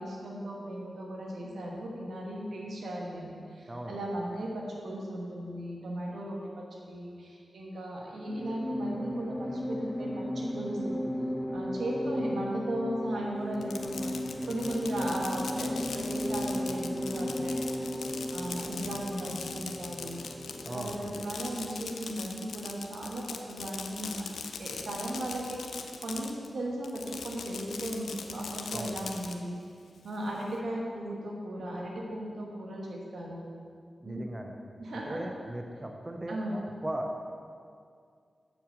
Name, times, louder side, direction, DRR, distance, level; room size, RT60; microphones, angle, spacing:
voice 1, 0.0-11.0 11.5-14.1 14.4-17.8 18.3-20.2 20.7-24.3 24.6-29.6 30.0-33.4 34.0-34.2 34.8-35.2 36.3-36.6, right 1 dB, 80° right, -2 dB, 1.3 m, -36 dB
sound 1, 8.2-21.6, equal, 35° left, 1.7 m, -35 dB
Fireworks, 13.5-26.5 26.8-29.3, left 5 dB, 85° left, 0.5 m, -41 dB
voice 2, 20.6-21.2 28.7-29.0 34.0-34.6 34.9-37.2, right 1 dB, 25° right, 3 dB, 0.7 m, -38 dB
7.3 x 5.9 x 5.1 m, 2.2 s
cardioid pair, 45°, 0 cm